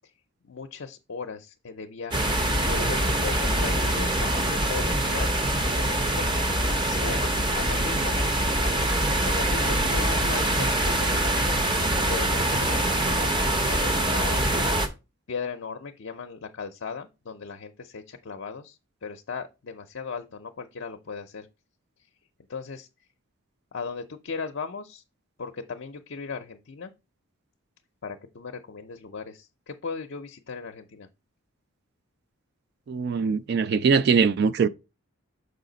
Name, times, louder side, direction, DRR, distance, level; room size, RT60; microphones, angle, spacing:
voice 1, 0.4-2.4 2.6-5.3 5.7-6.3 6.8-7.3 7.5-8.2 9.2-11.6 12.1-13.3 13.7-14.5 15.3-21.5 22.5-22.9 23.7-25.0 25.4-26.9 28.0-31.1, left 5 dB, 60° left, 0.5 m, -37 dB
sound 1, 2.1-14.9, right 1 dB, 20° right, 0.7 m, -24 dB
voice 2, 32.9-34.7, right 5 dB, 50° right, 0.3 m, -22 dB
6.6 x 4.9 x 3.9 m
head